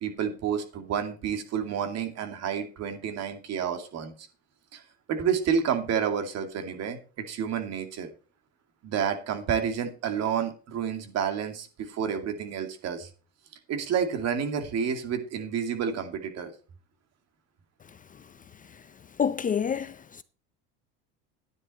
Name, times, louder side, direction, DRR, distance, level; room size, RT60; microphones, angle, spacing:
voice 1, 0.0-4.3 4.7-4.8 5.1-8.1 8.8-13.1 13.7-16.5, right 7 dB, 50° right, 2.5 m, -30 dB
voice 2, 19.2-20.2, left 7 dB, 25° left, 0.6 m, -27 dB
11.0 x 9.8 x 4.3 m
supercardioid pair, 105°, 32 cm